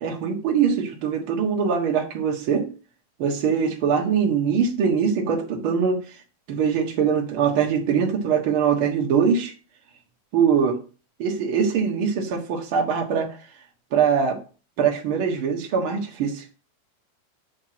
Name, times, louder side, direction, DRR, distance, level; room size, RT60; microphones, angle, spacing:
voice 1, 0.0-2.7 3.2-6.0 6.5-9.5 10.3-10.8 11.2-13.4 13.9-14.4 14.8-16.4, right 6 dB, 55° right, 1 dB, 1.4 m, -22 dB
8.0 x 3.5 x 5.9 m, 0.36 s
omnidirectional pair, 4.5 m